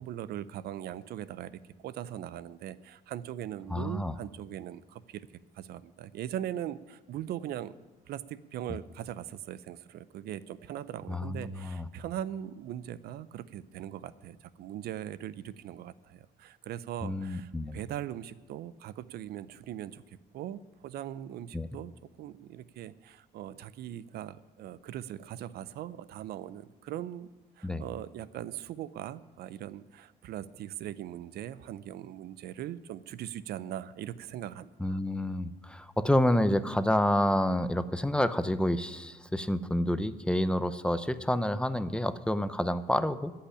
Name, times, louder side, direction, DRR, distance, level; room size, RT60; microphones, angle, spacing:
voice 1, 0.0-5.3 5.5-7.7 8.1-21.9 22.2-27.3 27.6-35.0, right 11 dB, 70° right, 17 dB, 0.6 m, -40 dB
voice 2, 3.7-4.2 11.1-11.9 17.0-17.8 21.5-21.7 27.6-27.9 34.8-43.3, left 1 dB, 5° left, 13 dB, 0.6 m, -28 dB
14.5 x 5.7 x 9.9 m, 1.2 s
cardioid pair, 110°, 17 cm